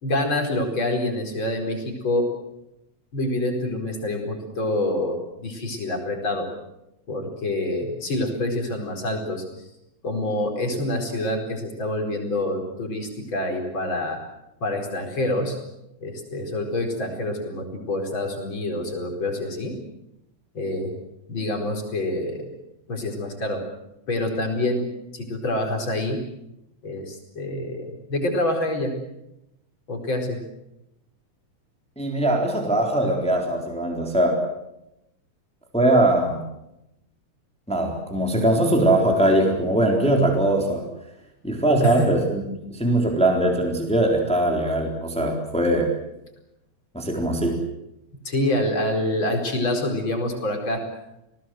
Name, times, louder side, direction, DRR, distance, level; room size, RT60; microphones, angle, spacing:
voice 1, 0.0-2.3 3.1-6.5 7.1-9.4 10.0-14.2 14.6-15.6 16.0-19.7 20.5-20.9 21.3-22.4 22.9-23.6 24.1-24.8 25.1-26.2 26.8-28.9 29.9-30.4 41.8-42.1 48.3-50.8, left 1 dB, 40° left, 3 dB, 5.3 m, -26 dB
voice 2, 32.0-34.4 35.7-36.4 37.7-40.8 41.4-42.4 42.7-45.9 46.9-47.7, right 1 dB, ahead, 1 dB, 3.7 m, -21 dB
29.5 x 19.0 x 7.8 m, 0.88 s
omnidirectional pair, 3.5 m